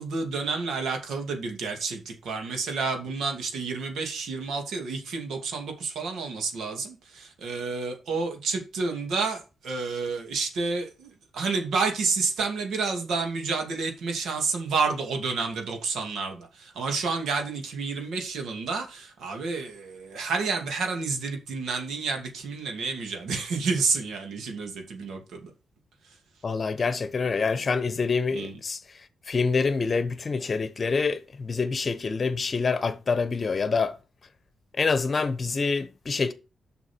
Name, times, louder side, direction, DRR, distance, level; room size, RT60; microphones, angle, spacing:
voice 1, 0.0-25.5 28.3-28.5, right 4 dB, 85° right, 2.6 m, -30 dB
voice 2, 26.4-28.8 29.3-33.9 34.8-36.3, left 4 dB, 40° left, 1.1 m, -26 dB
7.3 x 6.0 x 4.6 m
cardioid pair, 110°, 0 cm